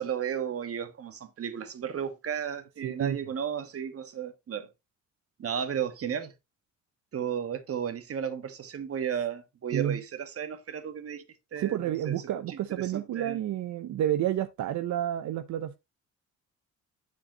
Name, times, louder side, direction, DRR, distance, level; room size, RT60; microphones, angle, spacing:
voice 1, 0.0-4.7 5.4-6.3 7.1-11.2 11.5-12.1 12.5-13.4, right 8 dB, 50° right, 1.5 m, -34 dB
voice 2, 2.8-3.2 9.7-10.0 11.6-15.8, right 11 dB, 70° right, 0.7 m, -30 dB
9.4 x 7.0 x 2.9 m
cardioid pair, 90°, 30 cm